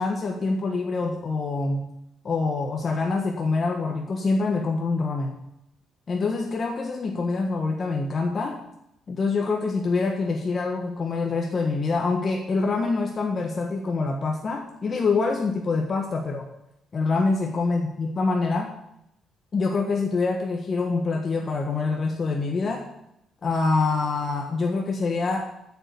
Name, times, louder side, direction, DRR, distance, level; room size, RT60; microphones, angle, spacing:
voice 1, 0.0-1.9 2.2-5.3 6.1-8.6 9.1-16.5 16.9-18.7 19.5-22.9 23.4-25.5, left 3 dB, 40° left, 1 dB, 1.4 m, -25 dB
8.8 x 7.1 x 8.4 m, 0.82 s
cardioid pair, 90°, 0 cm